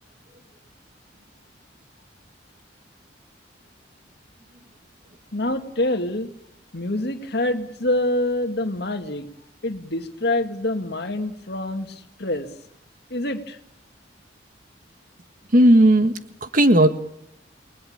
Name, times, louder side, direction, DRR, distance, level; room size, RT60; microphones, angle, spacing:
voice 1, 5.3-6.3 6.7-9.3 9.6-12.5 13.1-13.6, left 1 dB, 60° left, 6 dB, 2.2 m, -26 dB
voice 2, 15.5-16.9, right 1 dB, 50° right, 9 dB, 1.5 m, -15 dB
29.0 x 20.0 x 8.9 m, 0.79 s
head